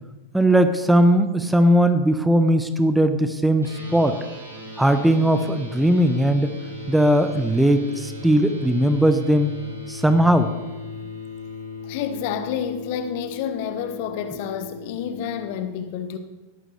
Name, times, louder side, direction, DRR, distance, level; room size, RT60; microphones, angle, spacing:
voice 1, 0.3-4.2 4.8-6.5 6.9-9.5 9.9-10.5, right 1 dB, 5° right, 0.8 m, -18 dB
sound 1, 3.6-15.5, left 3 dB, 85° right, 5.9 m, -37 dB
voice 2, 11.8-16.2, left 8 dB, 50° left, 1.3 m, -29 dB
19.5 x 14.0 x 3.3 m
figure-of-eight pair, 90°, 0 cm